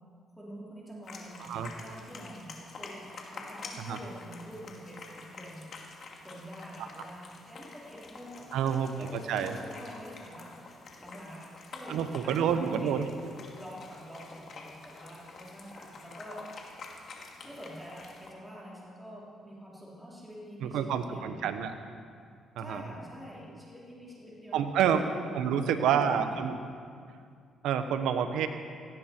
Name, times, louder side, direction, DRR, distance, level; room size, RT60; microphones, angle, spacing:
voice 1, 0.4-3.0 3.3-13.1 13.5-16.5 17.4-21.4 22.6-25.0 25.4-26.4, equal, ahead, -6 dB, 3.8 m, -47 dB
sound 1, 1.0-18.3, left 3 dB, 55° left, 2.4 m, -48 dB
voice 2, 1.4-1.7 3.8-4.0 8.5-9.6 11.9-13.1 20.6-21.7 22.6-22.8 24.5-25.0 25.3-26.6 27.6-28.5, right 8 dB, 85° right, 8 dB, 1.1 m, -28 dB
18.0 x 16.0 x 4.6 m, 2.2 s
cardioid pair, 90°, 0 cm